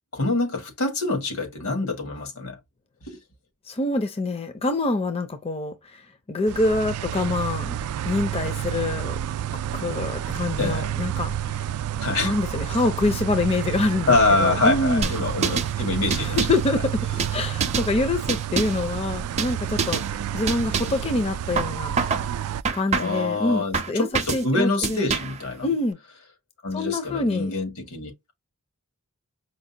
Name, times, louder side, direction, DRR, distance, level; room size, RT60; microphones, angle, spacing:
voice 1, 0.1-2.6 10.6-10.9 12.0-12.3 14.1-16.4 23.0-25.7 26.6-28.3, left 3 dB, 85° left, 1.8 m, -25 dB
voice 2, 3.7-7.8 8.0-9.2 9.7-11.6 12.2-15.1 16.2-17.0 17.3-20.0 20.3-21.9 22.7-25.0 25.6-26.0 26.7-27.5, left 2 dB, 25° left, 0.5 m, -25 dB
sound 1, 6.5-22.6, right 10 dB, 85° right, 0.3 m, -30 dB
sound 2, 15.0-15.7 16.1-16.7 17.2-17.9 18.3-18.9 19.4-19.5 19.8-20.1 20.5-21.0 21.6-22.3 22.6-23.3 23.7-24.4 24.8-25.4, right 5 dB, 30° right, 0.5 m, -26 dB
5.1 x 2.1 x 2.7 m
head